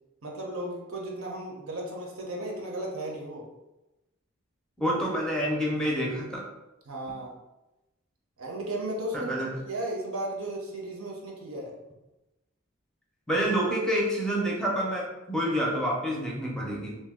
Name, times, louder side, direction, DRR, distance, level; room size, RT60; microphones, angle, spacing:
voice 1, 0.2-3.5 6.9-7.3 8.4-9.3 9.7-11.7, right 1 dB, 85° right, -1 dB, 0.7 m, -35 dB
voice 2, 4.8-6.4 9.1-9.5 13.3-17.0, equal, 5° left, -3 dB, 0.5 m, -28 dB
2.6 x 2.2 x 3.5 m, 0.99 s
head